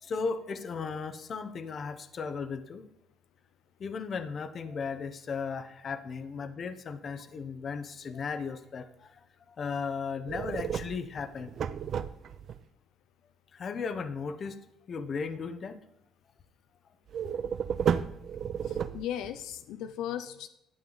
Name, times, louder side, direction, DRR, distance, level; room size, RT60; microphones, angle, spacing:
voice 1, 0.0-2.8 3.8-9.1 9.6-11.5 13.5-14.6 14.9-15.8, left 5 dB, 40° left, 11 dB, 0.9 m, -36 dB
sound 1, 10.3-12.6 17.1-19.4, right 8 dB, 50° right, 0.5 m, -32 dB
voice 2, 18.6-20.5, left 10 dB, 85° left, 10 dB, 0.5 m, -37 dB
11.0 x 8.8 x 3.9 m, 0.86 s
cardioid pair, 115°, 0 cm